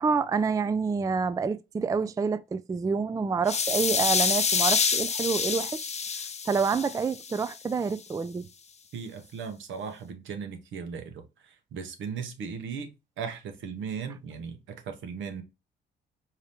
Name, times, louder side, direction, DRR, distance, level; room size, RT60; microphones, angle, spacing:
voice 1, 0.0-5.9 6.5-8.5, right 5 dB, 15° right, 0.3 m, -28 dB
sound 1, 3.5-7.5, left 5 dB, 35° left, 0.8 m, -27 dB
voice 2, 8.9-11.2 11.7-12.9 13.2-15.4, right 6 dB, 75° right, 1.2 m, -37 dB
4.7 x 2.9 x 3.4 m
cardioid pair, 90°, 20 cm